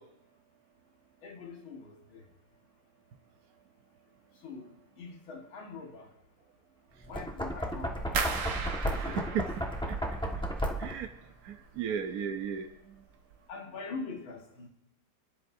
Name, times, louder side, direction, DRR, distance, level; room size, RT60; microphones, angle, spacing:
voice 1, 1.2-2.2 4.4-4.7 5.0-6.1 7.1-8.1 8.8-9.4 13.5-14.7, left 4 dB, 70° left, 2 dB, 2.3 m, -43 dB
Knock, 7.0-11.1, equal, 5° left, 0.8 m, -34 dB
sound 1, 8.2-11.0 11.3-12.0 12.4-12.8 13.2-13.4, right 5 dB, 90° right, 2.1 m, -37 dB
voice 2, 9.0-9.5 10.8-11.1 11.4-12.9, right 7 dB, 65° right, 5 dB, 0.9 m, -35 dB
29.5 x 10.5 x 2.6 m, 0.83 s
omnidirectional pair, 2.3 m